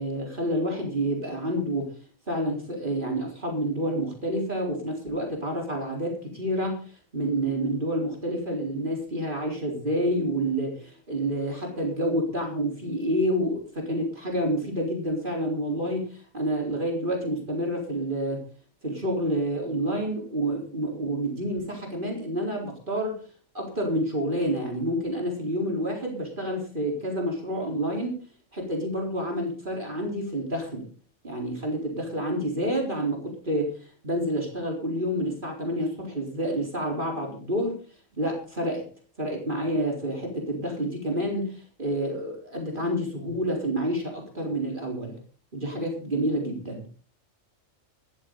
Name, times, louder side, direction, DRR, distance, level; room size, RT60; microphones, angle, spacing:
voice 1, 0.0-1.9 2.3-6.9 7.1-18.4 18.8-23.2 23.5-28.2 28.5-30.8 31.2-33.7 34.0-37.8 38.1-38.8 39.2-45.1 45.5-46.8, right 1 dB, 40° right, 1 dB, 4.3 m, -28 dB
14.5 x 13.5 x 3.9 m, 0.40 s
omnidirectional pair, 1.4 m